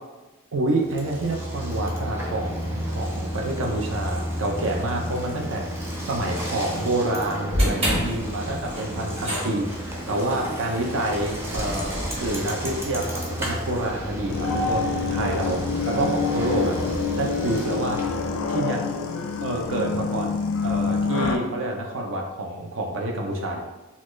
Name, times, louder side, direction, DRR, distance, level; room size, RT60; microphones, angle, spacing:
voice 1, 0.5-11.9 12.2-16.7 17.2-18.0 18.5-18.8 19.4-20.3 20.6-23.6, right 2 dB, 65° right, 1 dB, 0.6 m, -28 dB
Bicycle, 0.8-18.3, equal, 10° right, 0.6 m, -32 dB
sound 1, 7.5-13.8, equal, 30° right, 1.3 m, -30 dB
sound 2, 14.3-21.4, left 4 dB, 70° left, 0.4 m, -26 dB
4.1 x 2.4 x 3.0 m, 1.1 s
head